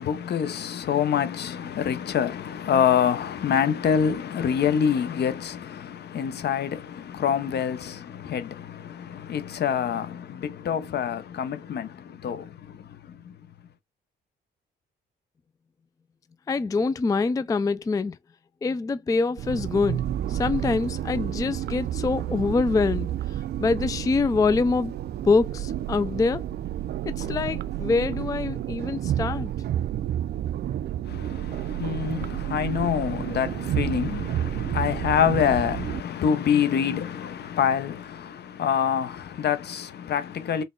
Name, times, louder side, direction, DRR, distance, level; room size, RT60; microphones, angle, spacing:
voice 1, 0.0-13.3 31.1-40.6, left 8 dB, 55° left, 0.7 m, -26 dB
voice 2, 16.5-18.2 18.6-20.0 20.3-23.1 23.6-25.0 25.2-26.5 27.1-29.5, left 4 dB, 15° left, 0.3 m, -25 dB
sound 1, 19.4-36.0, right 11 dB, 55° right, 0.4 m, -30 dB
4.0 x 2.2 x 3.7 m
cardioid pair, 90°, 20 cm